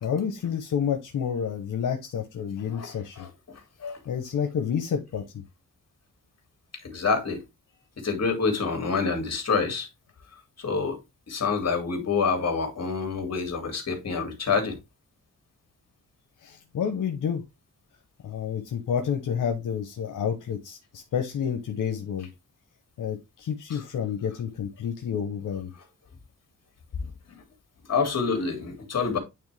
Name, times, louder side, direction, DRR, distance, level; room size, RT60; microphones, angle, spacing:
voice 1, 0.0-3.3 4.0-5.4 16.4-17.4 18.2-22.3 23.0-25.7, left 7 dB, 90° left, 0.9 m, -29 dB
voice 2, 2.7-4.0 6.8-7.4 8.0-9.9 10.6-11.0 11.3-14.8 23.7-23.8 27.3-27.4 27.9-29.2, left 5 dB, 55° left, 2.1 m, -27 dB
8.9 x 3.3 x 3.3 m
wide cardioid pair, 110°, 31 cm